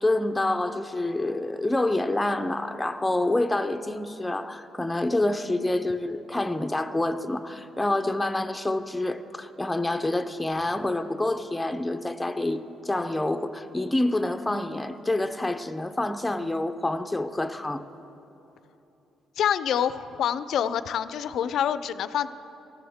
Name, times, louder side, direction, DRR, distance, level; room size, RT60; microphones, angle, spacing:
voice 1, 0.0-17.8, left 2 dB, 10° left, 8 dB, 0.6 m, -27 dB
voice 2, 19.4-22.3, left 9 dB, 70° left, 14 dB, 0.4 m, -26 dB
18.5 x 13.5 x 3.6 m, 3.0 s
cardioid pair, 90°, 0 cm